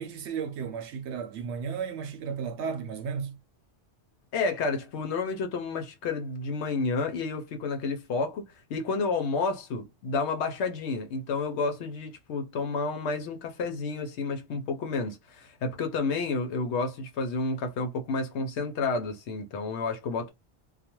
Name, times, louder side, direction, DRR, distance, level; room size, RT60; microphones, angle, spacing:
voice 1, 0.0-3.4, right 6 dB, 80° right, 0.9 m, -34 dB
voice 2, 4.3-8.4 8.7-20.3, left 4 dB, 80° left, 0.9 m, -30 dB
2.4 x 2.2 x 2.9 m
omnidirectional pair, 1.2 m